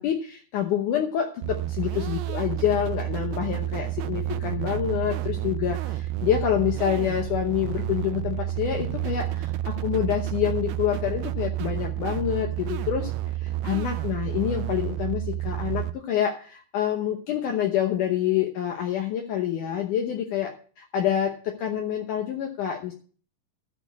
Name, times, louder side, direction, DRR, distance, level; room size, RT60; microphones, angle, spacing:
voice 1, 0.0-13.1 13.4-22.9, left 10 dB, 70° left, 3 dB, 2.2 m, -27 dB
sound 1, 1.4-15.9, right 14 dB, 90° right, 2.5 m, -30 dB
13.0 x 4.3 x 8.3 m, 0.42 s
omnidirectional pair, 4.2 m